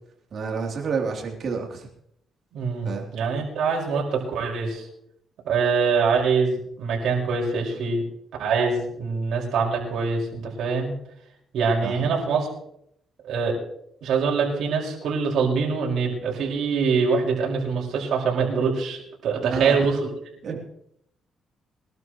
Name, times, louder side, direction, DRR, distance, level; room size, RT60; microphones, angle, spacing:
voice 1, 0.3-1.9 2.8-3.1 11.8-12.1 19.5-20.0 20.4-20.6, right 5 dB, 55° right, 1 dB, 3.4 m, -29 dB
voice 2, 2.5-4.9 5.4-8.0 8.4-10.9 11.5-12.5 13.2-13.5 14.0-20.0, right 5 dB, 70° right, -1 dB, 5.5 m, -24 dB
23.5 x 12.5 x 3.2 m, 0.73 s
cardioid pair, 90°, 0 cm